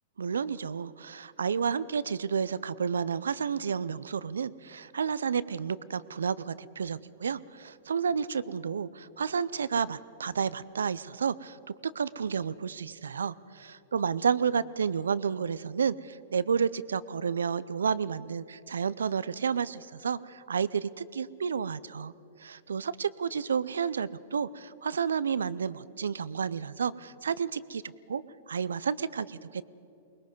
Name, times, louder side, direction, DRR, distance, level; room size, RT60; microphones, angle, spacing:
voice 1, 0.2-22.1 22.4-27.8 28.1-29.6, right 6 dB, 80° right, 18 dB, 0.5 m, -31 dB
23.5 x 20.5 x 5.4 m, 2.7 s
hypercardioid pair, 115°, 0 cm